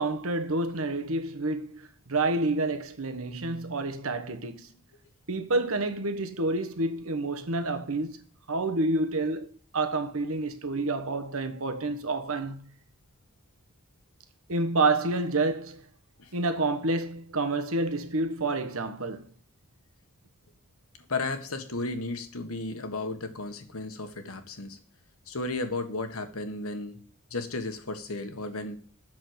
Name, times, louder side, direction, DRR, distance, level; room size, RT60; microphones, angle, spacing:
voice 1, 0.0-4.7 5.3-12.7 14.5-15.8 16.3-19.3, right 2 dB, 65° right, 1.3 m, -29 dB
voice 2, 21.1-24.8 25.3-27.0 27.3-28.8, left 2 dB, 70° left, 1.6 m, -34 dB
7.6 x 6.5 x 7.9 m
head